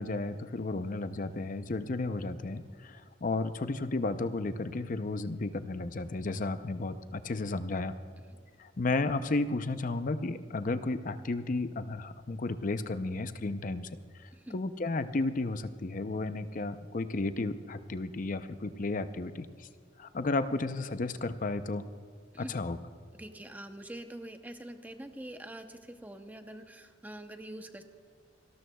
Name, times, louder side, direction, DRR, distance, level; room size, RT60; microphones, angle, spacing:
voice 1, 0.0-7.9 8.6-13.9 14.5-19.7 20.0-21.8 22.4-22.8, left 2 dB, 45° left, 11 dB, 0.6 m, -33 dB
voice 2, 23.2-27.8, right 1 dB, 10° right, 6 dB, 0.7 m, -45 dB
28.0 x 12.5 x 2.3 m, 2.1 s
head